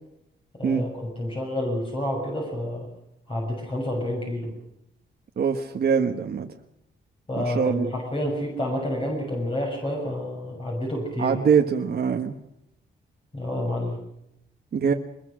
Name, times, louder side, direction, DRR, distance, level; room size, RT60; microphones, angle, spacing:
voice 1, 0.5-2.9 3.3-4.5 7.3-11.4 13.3-14.0, left 1 dB, 25° left, -1 dB, 6.5 m, -29 dB
voice 2, 5.4-6.5 7.4-7.9 11.2-12.4 14.7-14.9, right 6 dB, 55° right, 3 dB, 1.4 m, -23 dB
23.0 x 21.5 x 6.4 m, 0.79 s
wide cardioid pair, 125°, 20 cm